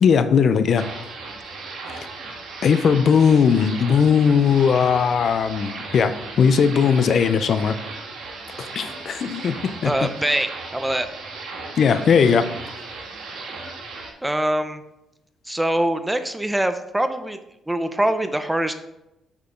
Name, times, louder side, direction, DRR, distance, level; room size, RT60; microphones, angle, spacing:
voice 1, 0.0-0.8 2.6-7.8 8.6-9.9 11.8-12.5, left 6 dB, 55° left, 11 dB, 0.4 m, -18 dB
sound 1, 0.7-14.1, right 3 dB, 75° right, 1.8 m, -36 dB
voice 2, 9.8-11.1 14.2-14.8 15.5-17.4 17.7-18.7, right 1 dB, 10° right, 9 dB, 0.6 m, -23 dB
5.9 x 5.7 x 3.7 m, 0.86 s
cardioid pair, 90°, 0 cm